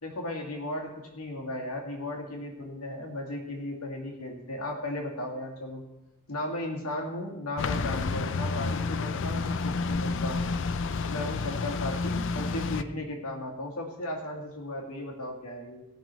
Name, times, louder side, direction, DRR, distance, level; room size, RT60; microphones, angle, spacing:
voice 1, 0.0-5.8 6.3-10.6 11.1-15.8, left 1 dB, 85° left, 0 dB, 2.3 m, -36 dB
sound 1, 7.6-12.8, left 4 dB, 55° left, 0.5 m, -30 dB
17.5 x 6.2 x 4.5 m, 1.0 s
head